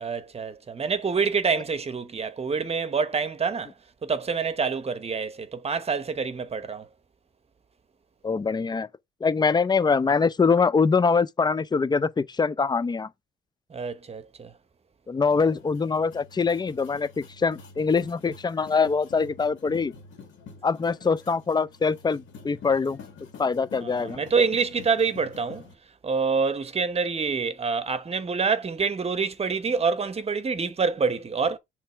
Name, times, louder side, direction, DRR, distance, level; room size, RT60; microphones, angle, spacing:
voice 1, 0.0-3.7 4.0-6.9 13.7-14.5 23.8-25.7 26.0-31.6, right 5 dB, 30° right, 1.0 m, -26 dB
voice 2, 8.2-8.9 9.2-13.1 15.1-19.9 20.6-23.0 23.4-24.2, left 5 dB, 20° left, 0.5 m, -23 dB
sound 1, 15.2-25.7, left 5 dB, 75° left, 2.0 m, -47 dB
6.7 x 3.2 x 4.4 m
cardioid pair, 90°, 20 cm